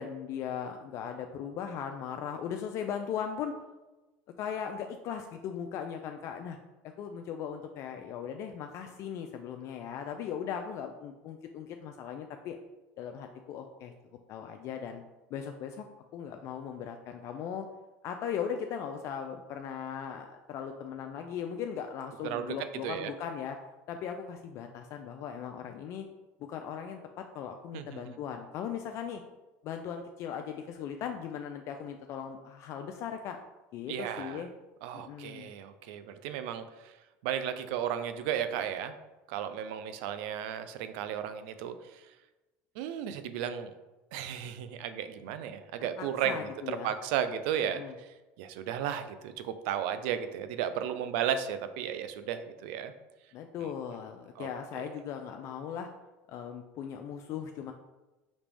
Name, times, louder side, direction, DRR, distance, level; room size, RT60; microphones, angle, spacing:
voice 1, 0.0-3.6 4.4-6.6 6.8-12.6 13.0-13.9 14.3-15.0 15.3-15.9 16.1-17.7 18.0-23.6 23.9-26.1 26.5-29.2 29.6-33.4 33.7-34.5 34.9-35.5 46.0-46.9 47.6-47.9 53.3-55.9 56.3-57.7, left 8 dB, 55° left, 5 dB, 0.4 m, -38 dB
voice 2, 22.2-22.6 22.8-23.1 27.7-28.2 33.9-34.4 34.8-36.9 37.2-38.9 39.3-42.0 42.8-43.7 44.1-48.1 48.4-52.9 54.4-54.5 54.7-54.9, right 9 dB, 75° right, 10 dB, 0.4 m, -34 dB
5.2 x 3.0 x 3.3 m, 1.1 s
supercardioid pair, 110°, 6 cm